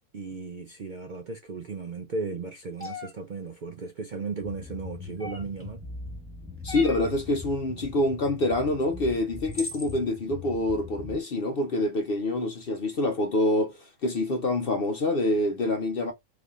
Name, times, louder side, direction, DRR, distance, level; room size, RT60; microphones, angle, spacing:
voice 1, 0.1-5.8, right 4 dB, 85° right, 0.4 m, -36 dB
sound 1, 2.8-3.1 5.2-5.6 6.7-7.1 8.8-8.9 9.5-9.9, left 2 dB, 10° left, 0.7 m, -38 dB
sound 2, 4.4-11.2, left 3 dB, 5° right, 1.4 m, -41 dB
voice 2, 6.6-16.1, left 2 dB, 55° left, 0.6 m, -26 dB
4.0 x 3.3 x 2.4 m
omnidirectional pair, 1.6 m